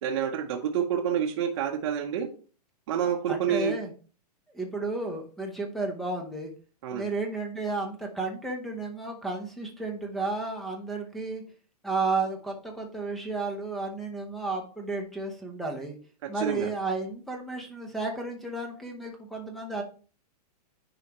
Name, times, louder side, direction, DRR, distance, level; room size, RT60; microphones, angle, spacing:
voice 1, 0.0-2.3 2.9-3.7 6.8-7.1 16.2-16.7, right 8 dB, 40° right, 1 dB, 0.8 m, -28 dB
voice 2, 3.0-3.9 4.5-6.5 6.9-11.4 11.8-16.0 16.3-19.8, right 3 dB, ahead, 2 dB, 0.7 m, -32 dB
9.6 x 4.9 x 2.9 m, 0.38 s
hypercardioid pair, 170°, 21 cm